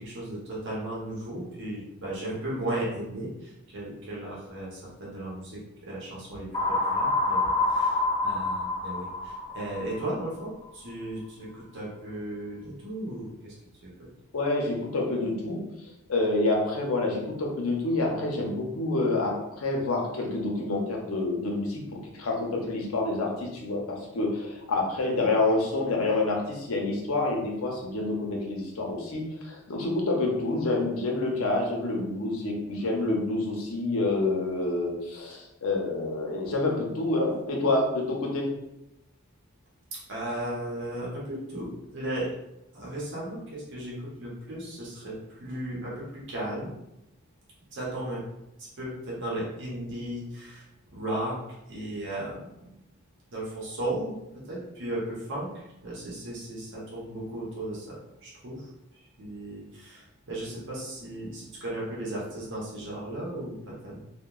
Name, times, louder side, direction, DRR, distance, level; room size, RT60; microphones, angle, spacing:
voice 1, 0.0-13.5 13.8-13.9 39.9-42.3 42.7-46.7 47.7-48.2 48.8-50.7 50.9-51.4 51.7-52.7 53.3-54.1 54.5-58.7 59.2-64.0, right 1 dB, 60° right, -6 dB, 0.8 m, -35 dB
sound 1, 6.5-10.4, left 2 dB, 20° left, 0.3 m, -27 dB
voice 2, 14.3-15.6 16.1-21.8 22.1-38.5, left 2 dB, 80° left, 0 dB, 0.6 m, -28 dB
2.8 x 2.1 x 2.3 m, 0.88 s
head